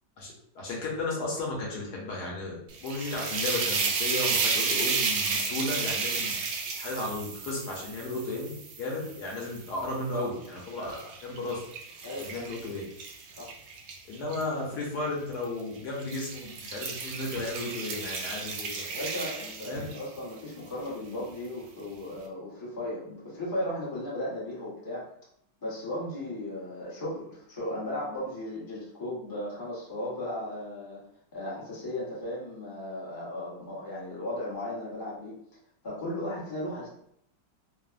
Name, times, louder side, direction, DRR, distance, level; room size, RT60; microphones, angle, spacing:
voice 1, 0.2-6.3 6.8-8.5 8.8-11.6 12.2-12.8 14.1-18.9 19.6-19.9, left 2 dB, 70° left, -3 dB, 1.2 m, -34 dB
sound 1, 2.7-9.9 10.5-14.4 15.3-15.6 16.0-20.2, right 4 dB, 90° right, 1.3 m, -32 dB
voice 2, 12.0-12.5 13.4-13.5 18.9-25.1 25.6-31.0 31.3-35.4 35.8-36.9, left 1 dB, 25° left, -8 dB, 0.4 m, -36 dB
3.1 x 2.0 x 2.4 m, 0.69 s
omnidirectional pair, 2.0 m